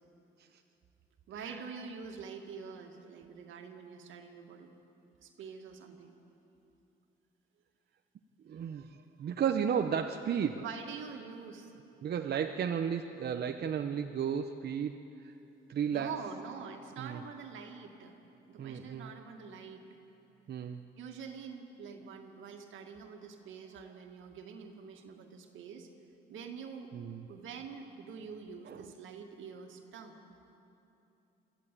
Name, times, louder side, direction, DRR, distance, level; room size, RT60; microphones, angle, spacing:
voice 1, 1.3-4.7 5.2-6.1 10.6-11.7 12.2-12.4 15.9-18.1 18.5-19.8 21.0-25.9 26.3-26.9 27.3-30.2, right 6 dB, 80° right, 4 dB, 2.1 m, -45 dB
voice 2, 8.5-10.6 12.0-15.3 15.7-16.1 17.0-17.2 18.6-19.1 20.5-20.8 26.9-27.3 28.7-28.9, right 8 dB, 55° right, 5 dB, 0.8 m, -34 dB
24.0 x 14.5 x 8.4 m, 2.9 s
cardioid pair, 90°, 20 cm